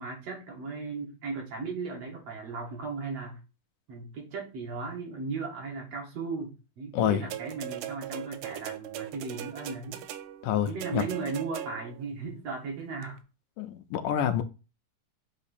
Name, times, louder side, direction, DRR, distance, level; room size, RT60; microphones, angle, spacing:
voice 1, 0.0-3.4 3.9-10.0 10.7-13.2, right 4 dB, 55° right, 2.3 m, -36 dB
sound 1, 7.3-12.1 13.0-13.1, right 12 dB, 90° right, 2.2 m, -39 dB
voice 2, 10.4-11.0 13.6-14.4, left 10 dB, 80° left, 2.1 m, -27 dB
7.9 x 3.0 x 4.2 m
omnidirectional pair, 3.8 m